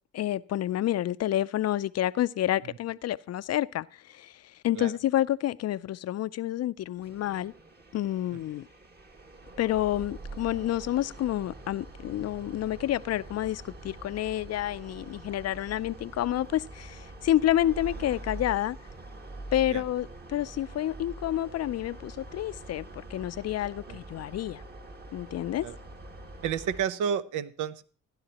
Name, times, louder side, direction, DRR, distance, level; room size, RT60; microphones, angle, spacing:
voice 1, 0.1-4.3 4.6-7.5 7.9-8.7 9.6-18.8 19.5-24.6 25.1-25.7, left 13 dB, 55° left, 0.5 m, -29 dB
sound 1, 7.0-26.8, right 2 dB, 35° right, 1.9 m, -45 dB
voice 2, 26.4-27.8, right 8 dB, 80° right, 0.8 m, -31 dB
15.0 x 10.5 x 2.9 m
cardioid pair, 90°, 30 cm